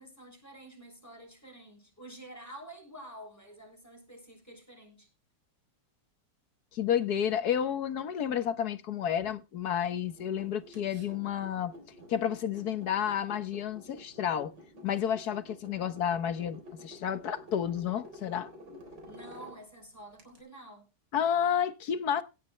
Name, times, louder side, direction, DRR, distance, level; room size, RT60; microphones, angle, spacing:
voice 1, 0.0-5.1 19.0-20.9, right 1 dB, 10° left, 6.8 m, -49 dB
voice 2, 6.7-11.7 12.1-14.5 14.8-18.8 21.1-22.2, left 9 dB, 65° left, 1.5 m, -31 dB
sound 1, 10.1-20.4, equal, 80° right, 4.5 m, -51 dB
17.5 x 9.6 x 3.3 m
omnidirectional pair, 1.9 m